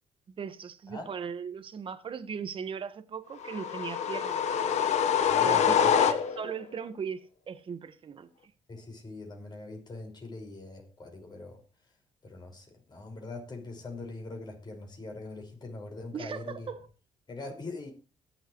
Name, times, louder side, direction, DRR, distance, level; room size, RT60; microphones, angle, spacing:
voice 1, 0.4-4.4 5.4-8.3 16.1-16.8, right 6 dB, 45° right, 1.5 m, -38 dB
sound 1, 3.4-6.6, left 8 dB, 65° left, 1.2 m, -25 dB
voice 2, 5.3-5.9 8.7-11.6 12.2-16.7 17.3-17.9, left 2 dB, 35° left, 5.6 m, -42 dB
22.5 x 8.0 x 3.2 m
cardioid pair, 95°, 12 cm